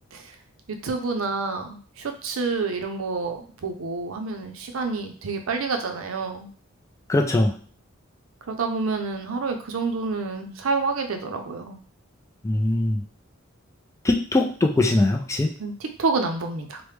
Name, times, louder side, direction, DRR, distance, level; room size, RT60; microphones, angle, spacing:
voice 1, 0.8-6.5 8.5-11.8 15.6-16.8, right 4 dB, 75° right, 5 dB, 0.5 m, -28 dB
voice 2, 7.1-7.5 12.4-13.0 14.0-15.5, left 2 dB, 15° left, 2 dB, 0.3 m, -21 dB
3.1 x 2.1 x 3.2 m, 0.43 s
head